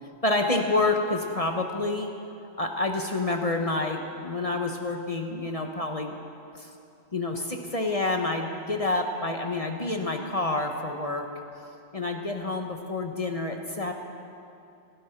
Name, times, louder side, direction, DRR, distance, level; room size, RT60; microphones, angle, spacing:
voice 1, 0.2-2.1 2.6-6.2 6.5-6.7 7.1-11.3 11.9-13.9, left 2 dB, 35° left, 3 dB, 0.9 m, -28 dB
18.5 x 16.0 x 4.5 m, 2.7 s
omnidirectional pair, 1.2 m